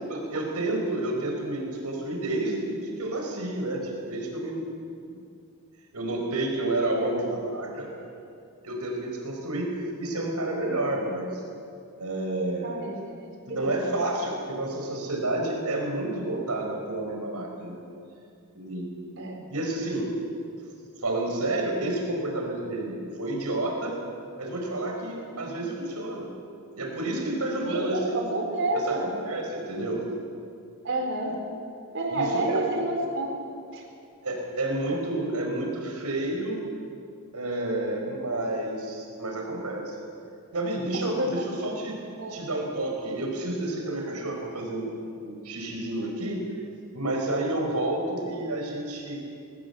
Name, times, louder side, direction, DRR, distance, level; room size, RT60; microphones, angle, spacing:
voice 1, 0.1-4.7 5.0-5.2 5.9-7.9 8.6-11.4 12.0-12.8 13.5-17.8 18.5-19.1 19.5-20.1 21.0-24.0 24.4-26.3 26.8-28.2 28.9-30.1 32.1-32.6 34.2-36.6 37.3-40.0 40.5-42.0 42.3-46.4 46.9-49.2, right 2 dB, 85° right, 1 dB, 4.9 m, -30 dB
voice 2, 6.8-7.2 12.6-14.0 19.2-19.4 25.3-25.6 27.6-29.1 30.8-31.4 31.9-33.8 41.2-41.6 42.2-42.4, right 1 dB, 60° right, 2 dB, 4.2 m, -30 dB
21.5 x 18.5 x 8.1 m, 2.4 s
head